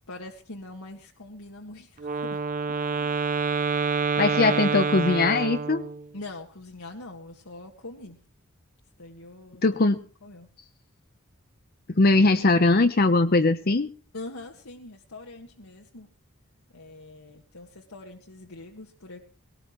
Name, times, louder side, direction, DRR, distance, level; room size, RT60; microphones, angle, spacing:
voice 1, 0.1-3.2 6.1-8.2 9.0-9.6 10.2-10.5 14.1-16.1 16.7-19.3, left 2 dB, 80° left, 1 dB, 1.8 m, -43 dB
Wind instrument woodwind instrument, 2.0-6.1, right 4 dB, 40° right, 0.7 m, -27 dB
voice 2, 4.2-5.9 9.6-10.0 11.9-13.9, left 3 dB, 45° left, 9 dB, 0.8 m, -20 dB
20.5 x 18.0 x 3.1 m, 0.38 s
head